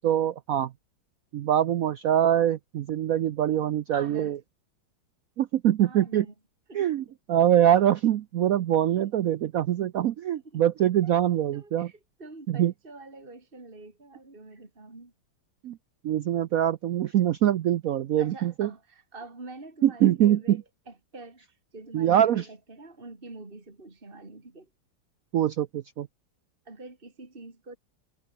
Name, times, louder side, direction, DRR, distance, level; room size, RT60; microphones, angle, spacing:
voice 1, 0.0-0.7 1.3-4.4 5.4-6.3 6.7-7.0 7.3-11.9 12.5-12.7 15.6-15.8 16.0-18.7 19.8-20.6 21.9-22.4 25.3-26.1, right 11 dB, 75° right, 0.7 m, -23 dB
voice 2, 3.9-4.4 5.8-6.3 6.7-7.2 8.9-9.1 10.4-10.6 11.0-11.1 11.5-15.1 18.1-24.7 26.6-27.8, right 2 dB, 25° right, 3.3 m, -46 dB
omnidirectional pair, 2.2 m